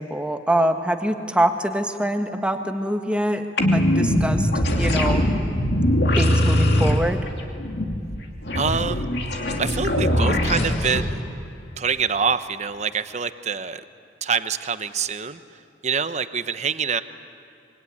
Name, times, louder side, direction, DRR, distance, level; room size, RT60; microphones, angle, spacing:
voice 1, 0.0-4.5 4.8-5.3 6.2-7.2, right 1 dB, 5° right, 5 dB, 1.5 m, -24 dB
sound 1, 3.6-11.0, left 1 dB, 70° left, 2.8 m, -21 dB
voice 2, 8.5-9.0 9.6-11.2 11.8-13.8 14.2-15.4 15.8-17.0, right 6 dB, 40° right, 11 dB, 0.9 m, -25 dB
26.0 x 23.0 x 9.6 m, 2.5 s
head